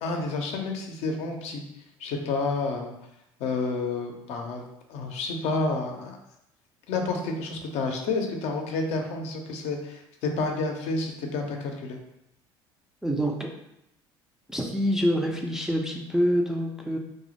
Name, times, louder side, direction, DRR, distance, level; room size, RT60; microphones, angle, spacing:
voice 1, 0.0-1.6 2.0-2.9 3.4-4.6 4.9-6.2 6.9-12.0, left 3 dB, 60° left, 2 dB, 0.5 m, -29 dB
voice 2, 13.0-13.5 14.5-17.0, equal, 5° right, 1 dB, 0.3 m, -26 dB
2.1 x 2.0 x 2.8 m, 0.82 s
hypercardioid pair, 75°, 13 cm